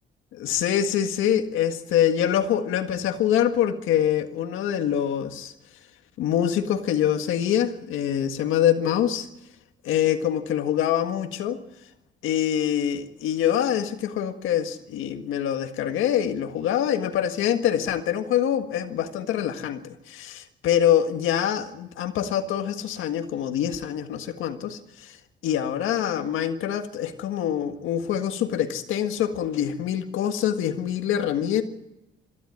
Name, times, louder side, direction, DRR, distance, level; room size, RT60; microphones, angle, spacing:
voice 1, 0.3-5.5 6.2-9.3 9.8-11.6 12.2-25.1 25.4-31.6, left 10 dB, 90° left, 7 dB, 1.7 m, -25 dB
21.5 x 14.0 x 9.6 m, 0.91 s
cardioid pair, 90°, 20 cm